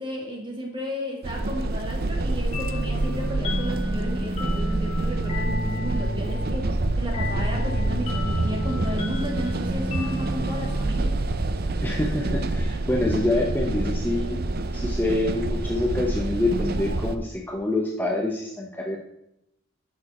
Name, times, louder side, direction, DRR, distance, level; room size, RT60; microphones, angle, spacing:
voice 1, 0.0-11.2, equal, 25° right, 0 dB, 2.0 m, -33 dB
sound 1, 1.2-17.2, right 2 dB, 45° right, 0.6 m, -27 dB
sound 2, 2.5-11.9, left 1 dB, 30° left, 1.5 m, -32 dB
voice 2, 11.8-14.4 14.7-19.0, left 2 dB, 10° left, 0 dB, 0.7 m, -26 dB
11.0 x 6.6 x 4.2 m, 0.83 s
head